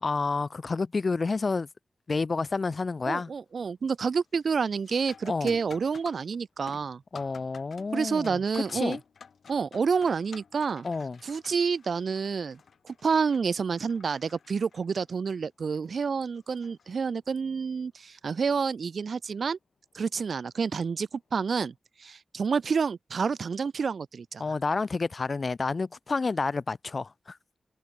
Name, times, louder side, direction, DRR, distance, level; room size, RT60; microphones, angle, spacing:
voice 1, 0.0-1.7 2.1-3.3 5.2-5.5 7.1-9.0 10.8-11.2 24.4-27.4, left 4 dB, 50° left, 0.6 m, -29 dB
sound 1, 2.3-2.7 3.1-3.5 3.9-17.4 19.9-20.0 20.8-21.1, left 6 dB, 90° left, 6.0 m, -53 dB
voice 2, 3.1-7.0 7.9-9.0 9.5-10.9 11.2-12.6 12.9-19.6 19.9-21.7 22.0-24.4, right 5 dB, 75° right, 1.8 m, -29 dB
wide cardioid pair, 100°, 0 cm